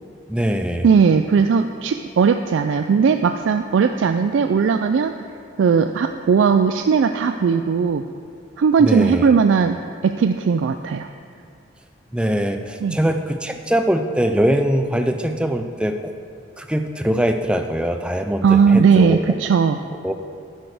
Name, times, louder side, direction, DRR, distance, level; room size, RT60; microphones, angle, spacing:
voice 1, 0.3-0.9 8.8-9.3 12.1-16.1 16.6-19.2 20.0-20.1, equal, 5° right, 6 dB, 0.4 m, -22 dB
voice 2, 0.8-5.1 5.6-8.1 8.6-9.8 10.0-11.1 12.8-13.0 18.4-19.8, right 6 dB, 70° right, 7 dB, 0.3 m, -17 dB
12.0 x 6.3 x 4.9 m, 2.4 s
head